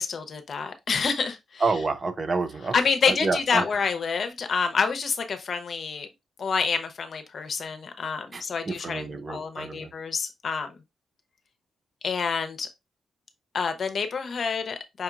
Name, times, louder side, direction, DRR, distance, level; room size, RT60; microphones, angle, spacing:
voice 1, 0.0-1.6 2.7-6.1 6.4-10.8 12.0-12.7 13.5-15.0, left 5 dB, 55° left, 0.7 m, -28 dB
voice 2, 1.6-2.7 3.1-3.6 8.3-9.9, right 3 dB, 40° right, 0.5 m, -28 dB
5.3 x 2.8 x 2.4 m
cardioid pair, 85°, 0 cm